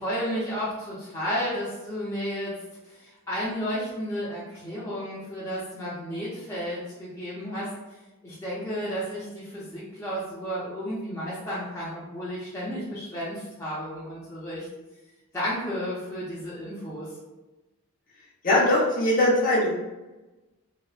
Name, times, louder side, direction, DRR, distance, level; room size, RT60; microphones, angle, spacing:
voice 1, 0.0-2.5 2.8-7.7 8.2-14.7 15.3-17.1, equal, 15° left, -10 dB, 0.7 m, -32 dB
voice 2, 18.4-19.7, left 1 dB, 40° left, -6 dB, 0.9 m, -21 dB
4.1 x 2.1 x 2.4 m, 1.1 s
head